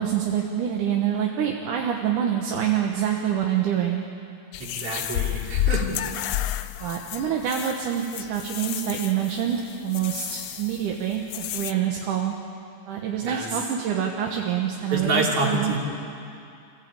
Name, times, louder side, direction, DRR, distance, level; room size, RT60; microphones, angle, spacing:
voice 1, 0.0-4.0 6.8-12.3 12.9-15.7, right 9 dB, 80° right, 1 dB, 2.7 m, -26 dB
sound 1, 4.5-11.7, left 12 dB, 80° left, 1.5 m, -31 dB
voice 2, 4.6-6.0 13.2-13.5 14.9-15.8, right 2 dB, 50° right, -1 dB, 3.8 m, -27 dB
26.5 x 15.5 x 8.8 m, 2.5 s
omnidirectional pair, 3.6 m